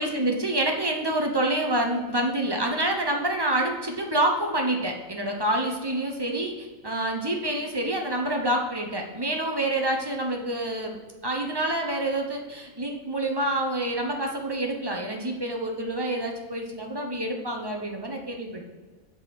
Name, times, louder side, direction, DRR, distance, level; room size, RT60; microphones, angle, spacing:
voice 1, 0.0-11.0 11.2-18.6, right 1 dB, 20° right, 2 dB, 0.7 m, -27 dB
7.8 x 4.0 x 5.9 m, 1.3 s
omnidirectional pair, 1.5 m